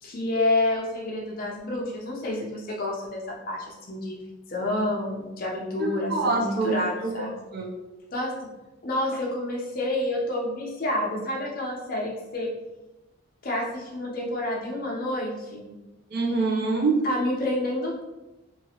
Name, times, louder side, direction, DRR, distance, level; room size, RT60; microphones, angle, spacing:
voice 1, 0.0-4.2 4.5-7.3 8.1-8.5 8.8-12.5 13.4-15.7 17.0-18.0, left 1 dB, 40° left, -2 dB, 0.6 m, -29 dB
voice 2, 5.8-7.7 16.1-17.0, right 3 dB, 45° right, 0 dB, 0.5 m, -26 dB
3.0 x 2.4 x 2.8 m, 1.0 s
head